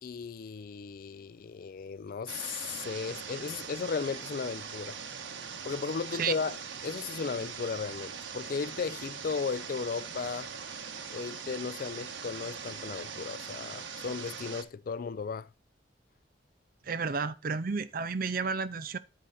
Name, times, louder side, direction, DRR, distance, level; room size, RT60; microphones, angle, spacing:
voice 1, 0.0-5.0 5.6-6.6 6.8-10.5 11.1-15.5, left 5 dB, 50° left, 0.4 m, -35 dB
sound 1, 2.3-14.6, right 6 dB, 85° right, 1.2 m, -41 dB
voice 2, 16.8-19.0, right 5 dB, 50° right, 0.6 m, -32 dB
10.0 x 4.8 x 4.2 m
head